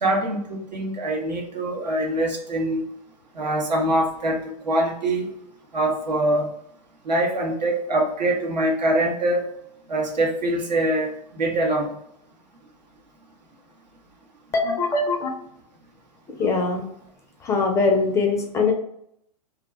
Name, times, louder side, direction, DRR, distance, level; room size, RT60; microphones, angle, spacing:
voice 1, 0.0-2.8 3.4-4.4 4.6-5.3 5.7-6.5 7.0-9.5 9.9-11.9, right 1 dB, 85° right, 0 dB, 0.9 m, -23 dB
voice 2, 14.5-15.3 16.3-16.8 17.4-18.7, left 4 dB, 15° left, 2 dB, 0.4 m, -22 dB
2.4 x 2.2 x 3.0 m, 0.73 s
hypercardioid pair, 115°, 21 cm